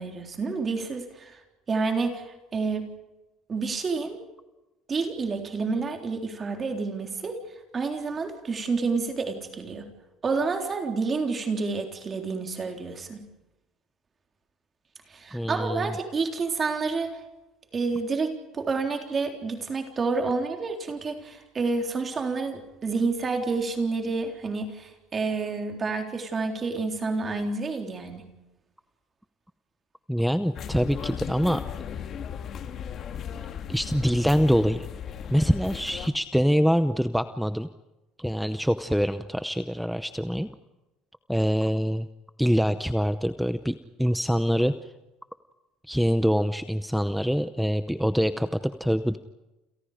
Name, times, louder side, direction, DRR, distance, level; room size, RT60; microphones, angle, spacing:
voice 1, 0.0-1.4 1.7-2.9 3.5-4.2 4.9-7.4 7.7-9.9 10.2-13.2 15.1-17.2 17.7-28.2, right 4 dB, 20° right, 4 dB, 3.7 m, -29 dB
voice 2, 15.3-15.9 30.1-31.6 33.7-34.9 35.3-37.7 38.2-40.5 41.3-42.1 42.4-44.7 45.9-49.2, equal, ahead, 11 dB, 0.7 m, -24 dB
sound 1, 30.5-36.1, left 8 dB, 35° left, 1.8 m, -36 dB
29.5 x 27.5 x 5.1 m, 1.0 s
cardioid pair, 170°, 0 cm